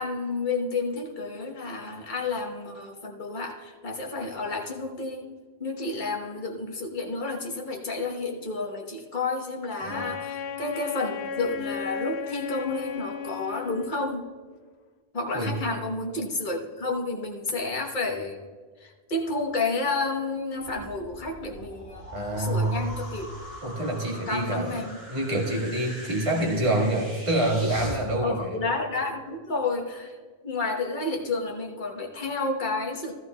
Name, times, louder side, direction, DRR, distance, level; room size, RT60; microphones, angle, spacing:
voice 1, 0.0-14.3 15.1-18.4 18.8-23.3 24.3-25.0 28.2-30.2 30.4-33.1, left 3 dB, 50° left, 1 dB, 1.3 m, -31 dB
Wind instrument woodwind instrument, 9.9-14.3, left 6 dB, 75° left, 0.9 m, -35 dB
sound 1, 20.6-28.0, equal, 65° right, 4.2 m, -42 dB
voice 2, 22.1-22.7 23.6-24.8 25.1-28.5, right 1 dB, 30° right, -2 dB, 1.8 m, -26 dB
14.5 x 14.0 x 2.3 m, 1.5 s
omnidirectional pair, 1.1 m